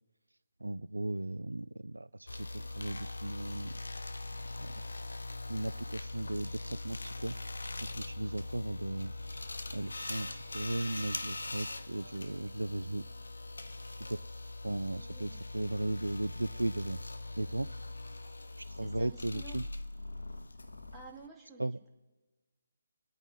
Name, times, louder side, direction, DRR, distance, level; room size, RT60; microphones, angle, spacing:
voice 1, 0.6-3.7 4.6-4.8 5.5-7.6 7.9-9.1 9.7-13.0 14.0-14.2 14.6-17.0 17.4-17.7 18.6-19.7 21.6-21.8, right 1 dB, 80° right, 14 dB, 0.3 m, -36 dB
sound 1, 2.3-21.3, left 2 dB, 75° left, 0.9 m, -42 dB
voice 2, 14.9-15.4 18.2-18.3 18.8-19.6 20.9-21.7, right 5 dB, 10° right, -3 dB, 1.8 m, -51 dB
26.5 x 8.9 x 3.6 m, 1.2 s
figure-of-eight pair, 145°, 0 cm